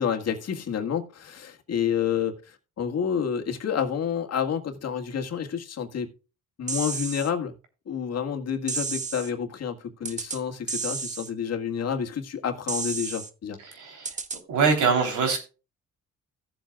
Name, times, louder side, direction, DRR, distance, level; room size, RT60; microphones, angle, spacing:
voice 1, 0.0-6.1 6.6-7.5 7.9-13.6, left 7 dB, 55° left, 1.8 m, -29 dB
sound 1, 6.7-7.3 8.7-9.3 10.0-10.4 10.7-11.3 12.7-13.3 14.0-14.4, right 5 dB, 25° right, 0.9 m, -32 dB
voice 2, 13.6-14.2 14.5-15.4, right 5 dB, 80° right, 3.5 m, -23 dB
16.5 x 7.7 x 2.4 m
cardioid pair, 90°, 30 cm